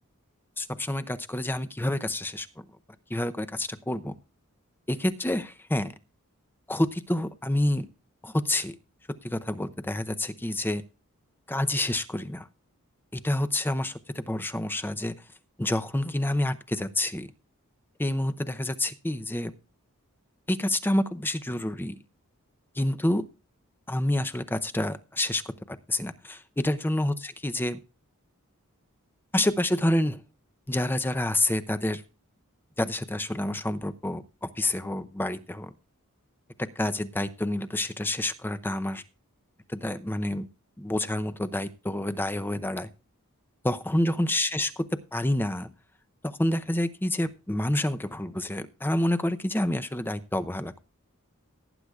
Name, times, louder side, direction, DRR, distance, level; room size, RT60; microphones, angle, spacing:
voice 1, 0.6-2.5 3.1-4.2 4.9-5.9 6.7-7.9 8.2-8.8 9.2-10.8 11.5-12.5 13.1-15.1 15.6-17.3 18.0-19.5 20.5-21.9 22.8-23.2 23.9-25.4 25.7-27.8 29.3-30.2 30.7-32.0 32.8-35.7 36.6-39.0 39.7-40.5 40.8-42.9 43.6-44.8 45.1-45.7 46.2-50.7, left 1 dB, 10° left, 11 dB, 0.6 m, -28 dB
18.0 x 9.6 x 2.4 m, 0.32 s
head